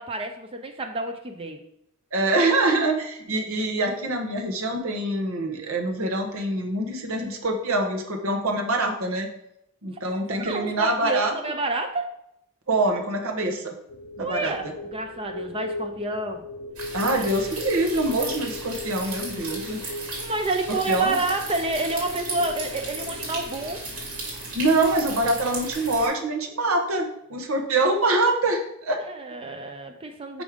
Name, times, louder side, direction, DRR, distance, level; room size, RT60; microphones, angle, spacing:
voice 1, 0.0-1.6 10.1-12.0 14.2-16.4 17.2-17.3 20.2-23.8 29.1-30.4, right 2 dB, 25° right, 5 dB, 0.5 m, -29 dB
voice 2, 2.1-9.3 9.8-11.3 12.7-13.7 14.2-14.5 16.9-19.8 20.7-21.1 24.5-29.0, right 2 dB, 70° right, 3 dB, 1.1 m, -25 dB
sound 1, 13.9-26.2, left 2 dB, 90° left, 0.7 m, -39 dB
sound 2, 16.8-26.1, right 3 dB, 90° right, 2.6 m, -36 dB
6.2 x 5.3 x 5.0 m, 0.78 s
head